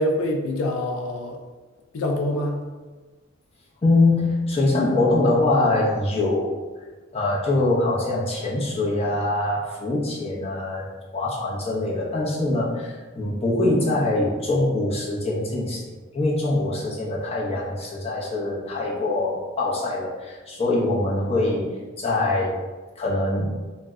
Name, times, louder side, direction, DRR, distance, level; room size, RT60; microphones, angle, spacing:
voice 1, 0.0-1.4 1.9-2.6, left 1 dB, 85° left, 3 dB, 0.4 m, -25 dB
voice 2, 3.8-6.5 7.1-22.6 23.0-23.6, left 2 dB, 30° left, -5 dB, 0.6 m, -23 dB
2.6 x 2.1 x 3.4 m, 1.3 s
head